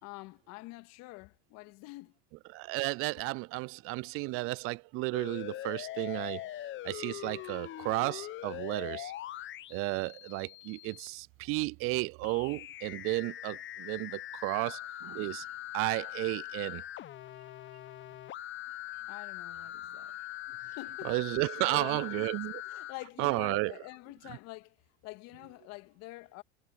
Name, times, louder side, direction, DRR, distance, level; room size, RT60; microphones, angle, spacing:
voice 1, 0.0-2.2 19.1-20.2 20.8-21.2 21.6-22.3 22.6-24.8 25.0-26.4, left 22 dB, 60° left, 2.1 m, -46 dB
voice 2, 2.5-6.4 6.8-9.1 9.7-15.4 15.7-16.8 21.0-22.5 23.2-23.7, right 24 dB, 45° right, 0.4 m, -33 dB
sound 1, 5.1-11.1 12.2-22.9, left 14 dB, 40° left, 1.1 m, -42 dB
hypercardioid pair, 85°, 30 cm